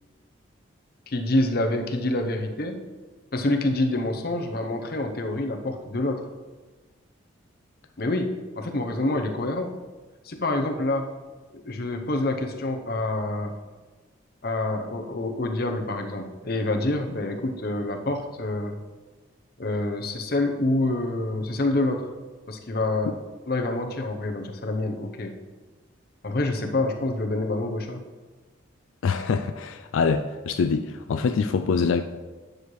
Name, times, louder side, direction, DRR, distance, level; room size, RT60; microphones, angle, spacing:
voice 1, 1.1-2.8 3.3-6.3 8.0-9.7 10.2-11.1 11.5-13.5 14.4-18.8 19.6-22.1 22.5-23.1 23.5-25.3 26.2-28.0, left 2 dB, 50° left, 3 dB, 0.8 m, -27 dB
voice 2, 29.0-32.0, left 5 dB, 85° left, 8 dB, 0.4 m, -24 dB
9.7 x 6.4 x 3.2 m, 1.3 s
head